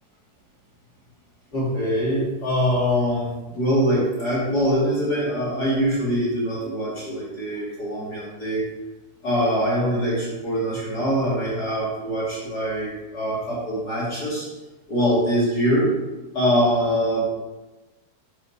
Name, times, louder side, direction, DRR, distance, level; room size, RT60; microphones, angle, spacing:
voice 1, 1.5-8.6 9.2-14.5 14.9-15.9 16.3-17.2, equal, 30° left, -7 dB, 2.2 m, -23 dB
8.3 x 7.1 x 4.3 m, 1.1 s
omnidirectional pair, 4.8 m